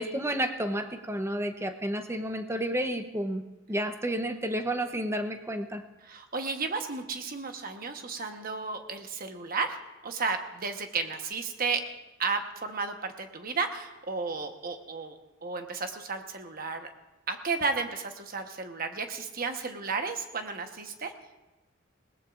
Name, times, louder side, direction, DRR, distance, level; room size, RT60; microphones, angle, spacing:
voice 1, 0.0-3.4 3.7-5.8, right 1 dB, 15° right, 7 dB, 0.8 m, -31 dB
voice 2, 6.0-9.8 10.0-11.8 12.2-16.9 17.3-21.1, right 4 dB, 45° right, 6 dB, 1.1 m, -33 dB
21.0 x 19.0 x 2.5 m, 1.1 s
head